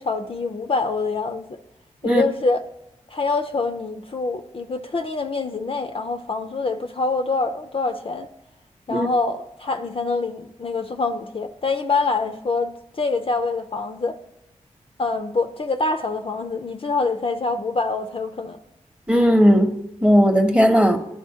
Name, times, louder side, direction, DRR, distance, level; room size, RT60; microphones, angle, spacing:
voice 1, 0.0-1.6 2.0-2.6 3.1-8.3 8.9-14.2 15.0-18.6, left 3 dB, 45° left, 0.5 m, -25 dB
voice 2, 19.1-19.7 20.0-21.0, equal, 10° right, 0.9 m, -16 dB
10.5 x 4.0 x 2.8 m
cardioid pair, 40°, 14 cm